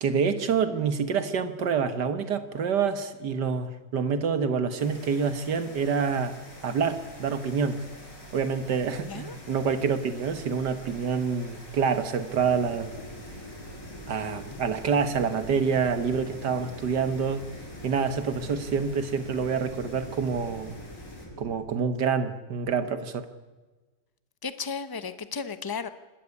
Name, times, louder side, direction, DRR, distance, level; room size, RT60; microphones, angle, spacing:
voice 1, 0.0-6.4 6.6-7.8 8.3-12.9 14.1-17.4 17.8-20.7 21.4-23.3, right 6 dB, 70° right, 10 dB, 2.0 m, -27 dB
sound 1, 4.8-21.3, left 1 dB, 80° left, 5.6 m, -47 dB
voice 2, 9.0-9.4 24.4-25.9, left 5 dB, 30° left, 12 dB, 0.4 m, -34 dB
sound 2, 12.3-21.5, left 1 dB, 15° left, 4.1 m, -43 dB
26.0 x 12.5 x 9.7 m, 1.2 s
omnidirectional pair, 1.9 m